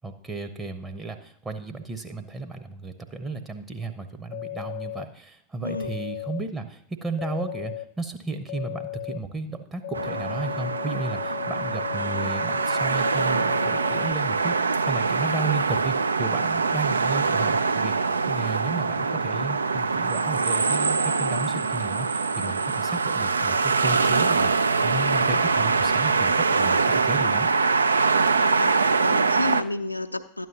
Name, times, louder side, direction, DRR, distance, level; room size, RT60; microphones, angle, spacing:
voice 1, 0.0-27.5, right 3 dB, 15° right, 6 dB, 0.8 m, -34 dB
sound 1, 4.3-5.0 5.6-6.4 7.2-7.8 8.5-9.2 9.8-14.1, left 17 dB, 45° left, 0.3 m, -35 dB
voice 2, 5.6-5.9 28.4-30.5, left 2 dB, 85° left, 7 dB, 0.6 m, -31 dB
sound 2, 9.9-29.6, right 4 dB, 75° right, 0.3 m, -23 dB
12.0 x 9.2 x 2.8 m, 0.69 s
figure-of-eight pair, 90°, 0 cm